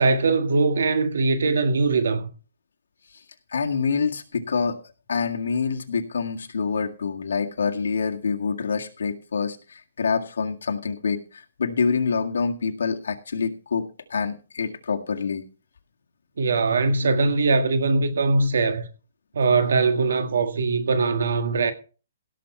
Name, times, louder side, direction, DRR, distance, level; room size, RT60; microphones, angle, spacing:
voice 1, 0.0-2.3 16.4-18.8 19.3-21.7, right 3 dB, 70° right, 1.7 m, -21 dB
voice 2, 3.5-4.8 5.1-15.4, left 5 dB, 75° left, 1.9 m, -26 dB
17.0 x 7.2 x 4.4 m
hypercardioid pair, 175°, 0 cm